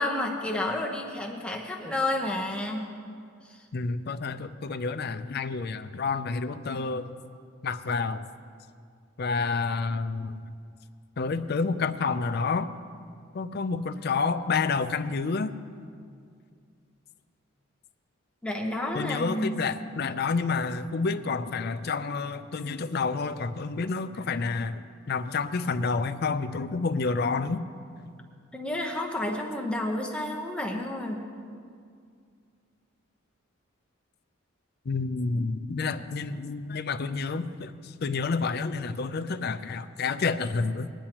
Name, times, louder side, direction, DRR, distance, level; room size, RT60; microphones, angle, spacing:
voice 1, 0.0-2.9 3.5-3.6 18.4-19.6 28.5-31.2, left 1 dB, 5° left, -1 dB, 0.9 m, -30 dB
voice 2, 3.7-7.1 7.6-8.2 9.2-10.4 11.2-12.7 13.3-15.5 18.9-24.8 25.1-27.6 34.9-40.9, left 4 dB, 50° left, 10 dB, 0.5 m, -29 dB
19.5 x 10.0 x 3.0 m, 2.2 s
head